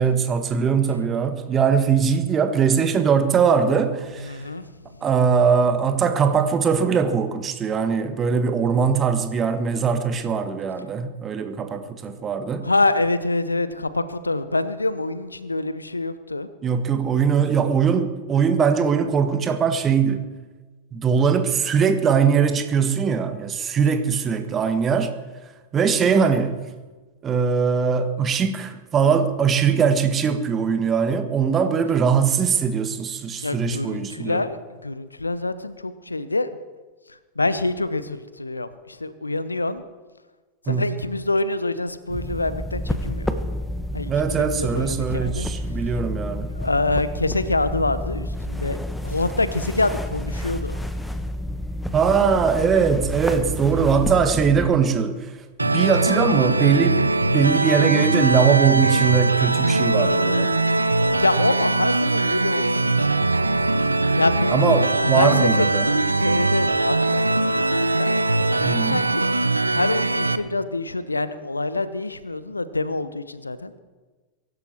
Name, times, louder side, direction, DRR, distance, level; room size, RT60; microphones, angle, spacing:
voice 1, 0.0-4.4 5.0-12.7 16.6-20.3 20.9-25.1 25.7-26.6 27.2-34.4 40.7-40.8 44.1-46.5 51.9-55.3 55.6-57.0 57.3-60.5 64.5-65.8 68.6-69.0, right 6 dB, 25° right, 1.5 m, -21 dB
voice 2, 4.2-4.6 12.6-16.5 33.4-36.6 37.1-39.8 40.6-43.3 43.9-44.3 44.5-45.5 46.6-48.8 49.0-50.8 60.9-63.6 64.2-68.1 68.6-69.3 69.7-73.8, left 2 dB, 80° left, 0.8 m, -26 dB
sound 1, 42.1-54.7, left 1 dB, 5° left, 1.1 m, -30 dB
sound 2, 55.6-70.4, right 2 dB, 80° right, 0.6 m, -21 dB
23.0 x 12.0 x 4.6 m
figure-of-eight pair, 90°, 0 cm